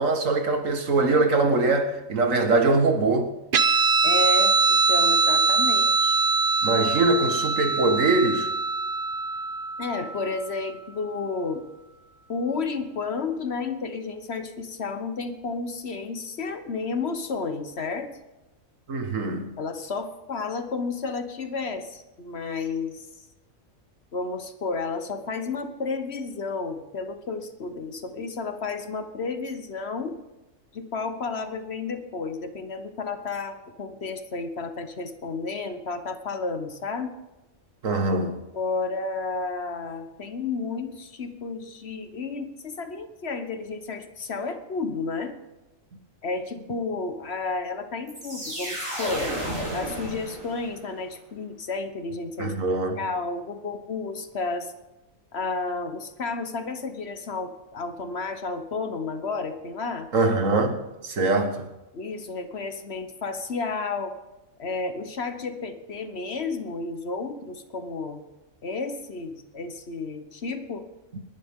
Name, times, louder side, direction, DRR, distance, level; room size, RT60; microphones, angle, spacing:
voice 1, 0.0-3.3 6.6-8.5 18.9-19.5 37.8-38.4 52.4-53.0 60.1-60.8 61.0-61.7, right 3 dB, 75° right, 1.9 m, -22 dB
Guitar, 3.5-10.4, right 4 dB, 50° right, 0.7 m, -22 dB
voice 2, 4.0-6.2 9.8-11.6 12.3-18.1 19.6-23.1 24.1-30.2 30.7-37.2 38.5-45.3 46.2-49.3 49.7-52.5 53.0-54.7 55.3-60.1 61.9-64.2 64.6-68.2 68.6-70.8, left 4 dB, 55° left, 1.3 m, -32 dB
sound 1, 48.1-50.9, right 1 dB, 25° right, 6.6 m, -32 dB
29.5 x 11.0 x 3.7 m
omnidirectional pair, 1.4 m